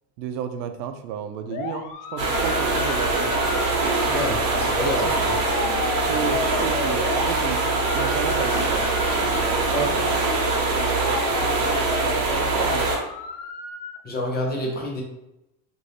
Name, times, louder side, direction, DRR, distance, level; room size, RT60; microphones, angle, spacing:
voice 1, 0.2-3.6 5.0-5.2 6.1-8.9 9.4-9.9 10.8-12.9, right 7 dB, 90° right, 8 dB, 0.5 m, -33 dB
sound 1, 1.5-14.0, left 4 dB, 65° left, 0.6 m, -34 dB
sound 2, 2.2-13.0, right 3 dB, 60° right, 1.0 m, -23 dB
voice 2, 4.0-5.4 9.7-10.0 14.0-15.0, left 1 dB, 20° left, -1 dB, 0.4 m, -28 dB
2.6 x 2.6 x 3.2 m, 0.88 s
supercardioid pair, 125°, 49 cm